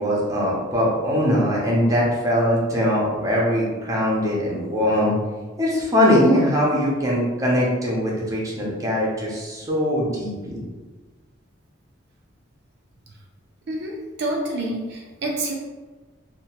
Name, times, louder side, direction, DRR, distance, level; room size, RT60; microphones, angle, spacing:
voice 1, 0.0-5.1 5.6-10.6, equal, 15° right, -5 dB, 0.6 m, -21 dB
voice 2, 13.7-15.5, right 1 dB, 60° right, -1 dB, 0.4 m, -28 dB
2.8 x 2.1 x 2.8 m, 1.2 s
head